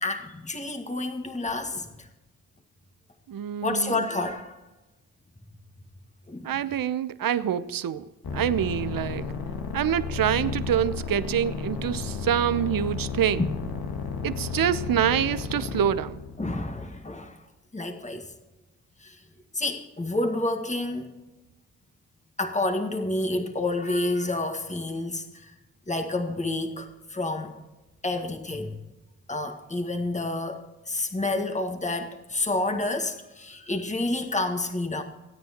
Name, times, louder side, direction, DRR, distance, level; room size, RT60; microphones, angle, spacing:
voice 1, 0.0-2.1 3.6-4.6 6.3-6.6 13.4-13.5 16.4-17.4 17.7-18.3 19.0-19.2 19.5-21.1 22.4-25.5 25.9-27.5 28.0-28.7 29.3-35.0, left 2 dB, 15° left, 5 dB, 1.9 m, -29 dB
voice 2, 3.3-4.0 6.4-8.0 8.3-9.2 9.7-13.4 14.2-16.2, right 10 dB, 55° right, 14 dB, 0.9 m, -26 dB
sound 1, 8.2-16.7, left 5 dB, 60° left, 1.9 m, -33 dB
27.5 x 9.5 x 3.0 m, 1.0 s
hypercardioid pair, 45°, 42 cm